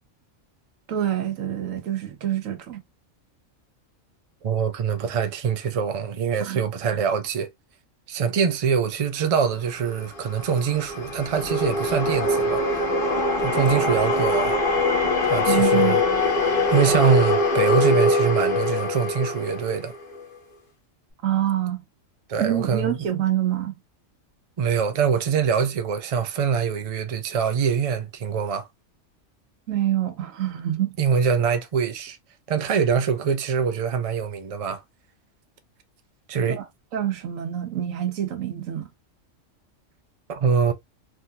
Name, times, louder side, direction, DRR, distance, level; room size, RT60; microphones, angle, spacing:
voice 1, 0.9-2.8 6.4-6.6 15.5-16.0 21.2-21.8 22.4-23.7 29.7-30.9 36.6-36.7 36.9-38.8, right 11 dB, 85° right, 1.1 m, -26 dB
voice 2, 4.4-7.5 8.1-12.8 13.4-14.5 15.2-16.0 16.7-19.9 22.3-23.1 24.6-28.7 31.0-32.2 32.5-34.8 36.3-36.6 40.3-40.7, right 6 dB, 60° right, 0.3 m, -24 dB
sound 1, 9.9-20.3, left 2 dB, 45° left, 1.2 m, -23 dB
3.5 x 2.7 x 2.3 m
omnidirectional pair, 1.3 m